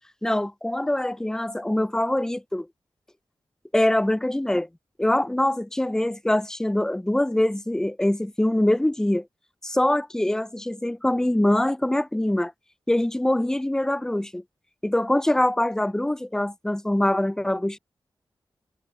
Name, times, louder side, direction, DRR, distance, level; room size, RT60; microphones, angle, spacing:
voice 1, 0.2-2.7 3.7-4.7 5.0-9.2 9.6-12.5 12.9-14.4 14.8-17.8, left 1 dB, 5° left, 0.4 m, -23 dB
wide cardioid pair, 90°, 9 cm